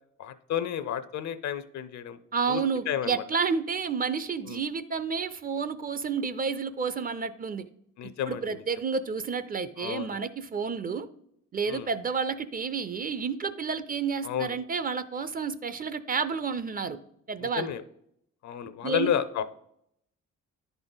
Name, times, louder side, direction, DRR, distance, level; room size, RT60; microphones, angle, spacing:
voice 1, 0.2-2.2 2.5-3.2 4.4-4.6 8.0-8.6 9.8-10.2 11.7-11.9 14.2-14.5 17.4-17.8 18.4-19.4, left 9 dB, 65° left, 13 dB, 0.6 m, -31 dB
voice 2, 2.3-7.6 8.3-11.1 11.5-17.0 17.3-17.7 18.8-19.1, right 5 dB, 30° right, 12 dB, 0.4 m, -30 dB
10.5 x 4.0 x 3.9 m, 0.74 s
cardioid pair, 90°, 30 cm